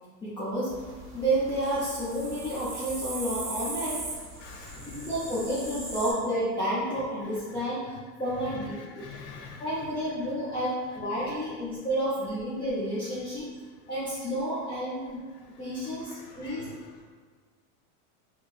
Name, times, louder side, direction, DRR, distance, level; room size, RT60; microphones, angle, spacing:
voice 1, 0.2-4.0 4.9-9.0 9.6-13.5 13.9-15.3 15.6-16.7, right 1 dB, 10° left, -12 dB, 0.5 m, -30 dB
sound 1, 0.7-6.1, right 2 dB, 25° right, 0.8 m, -39 dB
voice 2, 4.4-5.1 8.8-9.6 16.1-17.0, left 4 dB, 75° left, 1 dB, 0.8 m, -46 dB
4.4 x 2.0 x 2.4 m, 1.5 s
supercardioid pair, 125°, 47 cm